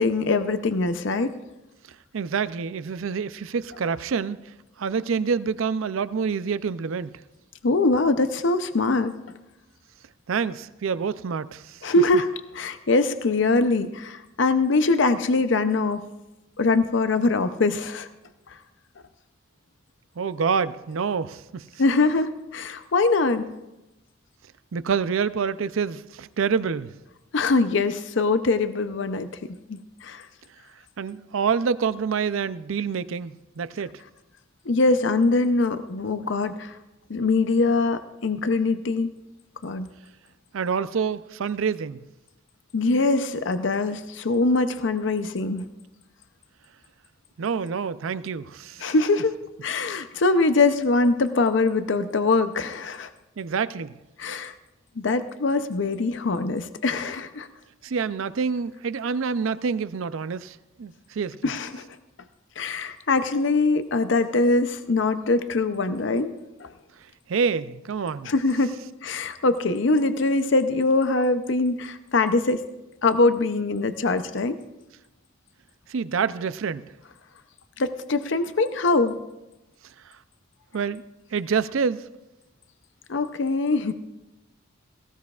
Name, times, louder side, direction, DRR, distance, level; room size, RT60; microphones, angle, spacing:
voice 1, 0.0-1.3 7.6-9.1 11.8-12.3 12.5-16.0 16.6-18.1 21.8-23.5 27.3-30.3 34.7-36.7 37.1-39.1 39.6-39.9 42.7-45.7 48.8-49.4 49.6-53.1 54.2-54.5 55.0-57.5 61.4-61.8 62.6-66.3 66.6-66.7 68.2-68.7 69.0-72.6 73.0-74.6 77.8-79.2 83.1-83.9, left 3 dB, 65° left, 10 dB, 0.6 m, -23 dB
voice 2, 2.1-4.4 4.8-7.2 10.3-11.8 20.2-21.7 24.7-26.9 31.0-33.9 40.5-42.0 47.4-48.9 53.4-54.0 57.8-61.4 67.3-68.3 75.9-76.9 80.7-81.0 81.3-82.0, right 6 dB, 80° right, 15 dB, 0.5 m, -27 dB
18.0 x 17.5 x 2.4 m, 0.98 s
head